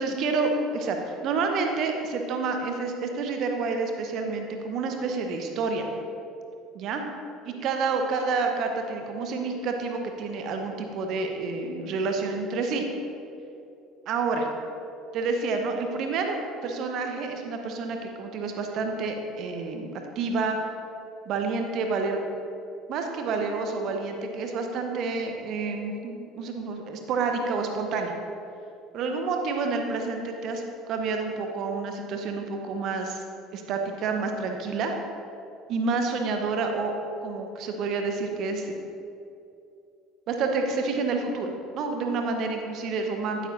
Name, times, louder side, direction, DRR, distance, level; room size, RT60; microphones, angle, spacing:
voice 1, 0.0-5.9 6.7-7.0 7.4-12.8 14.1-14.5 15.1-20.6 21.2-22.3 22.9-28.1 28.9-33.2 33.5-34.9 35.7-36.9 37.2-38.7 40.3-43.4, right 4 dB, 50° right, 4 dB, 1.1 m, -29 dB
12.0 x 9.2 x 2.7 m, 2.6 s
figure-of-eight pair, 60°, 0 cm